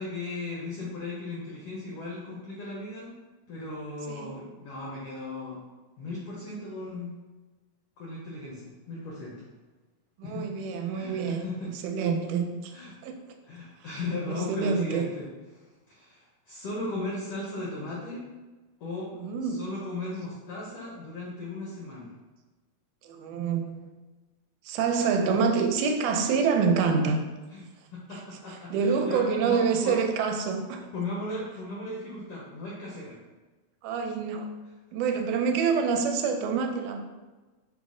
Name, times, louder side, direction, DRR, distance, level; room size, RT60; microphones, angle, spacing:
voice 1, 0.0-3.1 3.5-5.6 6.0-7.1 8.0-9.5 10.2-11.7 12.7-13.0 13.4-15.3 15.5-18.2 18.8-19.1 19.4-22.1 27.5-27.6 27.9-30.0 30.9-33.2, left 2 dB, 80° left, -4 dB, 1.3 m, -37 dB
voice 2, 4.1-4.4 10.2-12.7 13.0-13.1 14.3-15.1 19.1-19.6 23.0-23.9 24.7-27.3 28.1-28.2 28.5-30.8 33.8-34.5 34.9-37.0, right 5 dB, 85° right, 4 dB, 2.0 m, -27 dB
6.0 x 2.1 x 3.6 m, 1.2 s
omnidirectional pair, 3.5 m